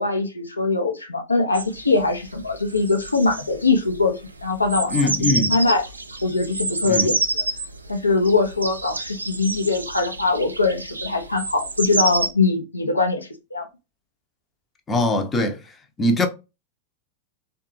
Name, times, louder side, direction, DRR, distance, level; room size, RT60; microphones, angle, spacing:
voice 1, 0.0-4.1 4.4-5.8 6.2-7.4 7.9-13.7, left 3 dB, 80° left, 0.5 m, -22 dB
sound 1, 1.5-12.3, right 3 dB, 80° right, 0.3 m, -29 dB
voice 2, 4.9-5.6 6.8-7.2 14.9-15.6 16.0-16.3, left 2 dB, 15° left, 0.6 m, -21 dB
3.6 x 2.2 x 2.9 m
figure-of-eight pair, 90°, 0 cm